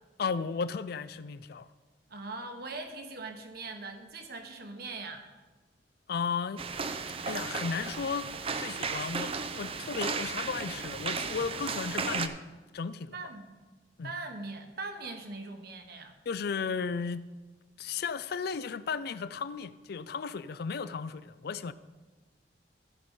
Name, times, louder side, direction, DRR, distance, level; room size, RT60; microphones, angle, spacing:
voice 1, 0.2-1.7 6.1-6.6 7.2-8.3 8.6-12.4 12.7-13.2 14.0-14.1 16.3-17.3 17.8-21.7, left 5 dB, 60° left, 0.4 m, -34 dB
voice 2, 2.1-5.3 13.1-13.6 14.0-16.2, right 3 dB, 60° right, 1.2 m, -41 dB
sound 1, 6.6-12.3, right 5 dB, 30° right, 0.5 m, -35 dB
14.0 x 5.2 x 5.5 m
head